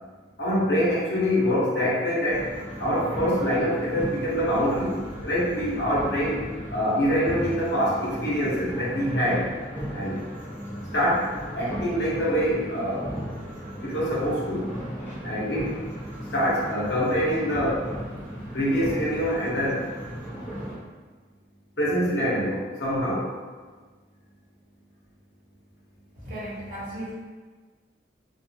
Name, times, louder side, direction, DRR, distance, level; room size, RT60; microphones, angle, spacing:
voice 1, 0.4-2.5 2.8-6.4 6.7-9.5 9.9-10.2 10.9-13.1 13.8-14.7 15.2-15.8 16.3-17.9 18.5-19.9 21.8-23.3, equal, 75° left, -6 dB, 0.8 m, -25 dB
sound 1, 2.3-20.8, equal, 10° left, 0.8 m, -36 dB
voice 2, 26.2-27.1, right 1 dB, 50° right, -9 dB, 1.0 m, -35 dB
2.4 x 2.3 x 2.7 m, 1.4 s
head